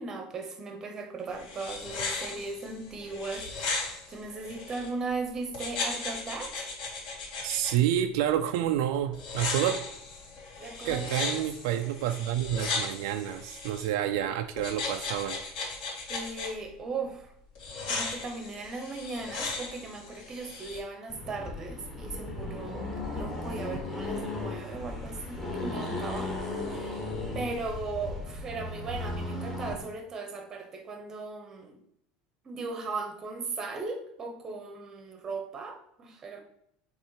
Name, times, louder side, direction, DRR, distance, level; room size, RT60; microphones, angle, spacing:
voice 1, 0.0-6.7 10.6-11.1 11.4-11.8 16.1-17.3 17.8-27.1 27.3-31.8 32.4-36.4, right 3 dB, 20° right, 5 dB, 1.0 m, -38 dB
sound 1, 1.3-4.9 5.5-7.7 9.1-13.9 14.6-16.5 17.5-20.8, left 3 dB, 50° left, 2.6 m, -36 dB
voice 2, 7.4-9.8 10.8-15.4, right 11 dB, 80° right, 7 dB, 0.5 m, -29 dB
Accelerating revving vroom, 21.1-29.8, left 2 dB, 10° left, 1.3 m, -36 dB
7.4 x 3.3 x 4.8 m, 0.73 s
cardioid pair, 165°, 2 cm